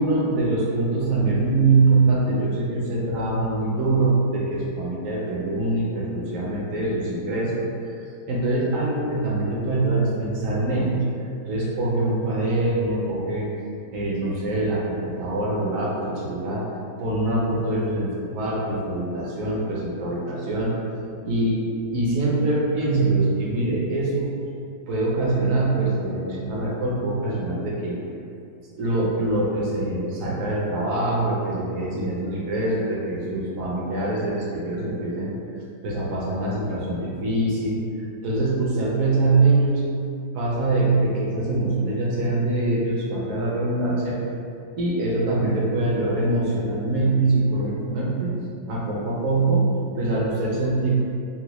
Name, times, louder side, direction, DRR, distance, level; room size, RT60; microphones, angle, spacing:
voice 1, 0.0-8.0 8.3-11.0 11.5-13.5 13.9-16.6 17.0-20.8 21.2-21.6 21.9-24.3 24.9-28.0 28.8-35.3 35.8-39.8 40.3-44.2 44.8-48.3 48.7-49.7 50.0-50.9, right 2 dB, 65° right, -5 dB, 0.8 m, -23 dB
3.9 x 2.1 x 2.9 m, 2.5 s
omnidirectional pair, 2.0 m